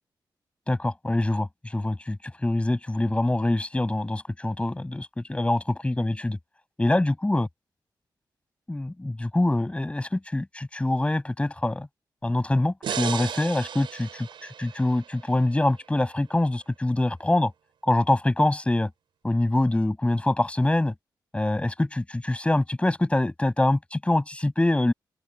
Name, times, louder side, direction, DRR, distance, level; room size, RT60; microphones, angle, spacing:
voice 1, 0.7-2.2 2.4-6.4 6.8-7.5 8.7-11.9 12.2-14.3 14.6-17.5 17.8-18.9 19.2-20.9 21.3-24.9, left 1 dB, 15° left, 7.3 m, -24 dB
sound 1, 12.8-16.1, right 8 dB, 90° right, 5.5 m, -35 dB
open air
cardioid pair, 100°, 8 cm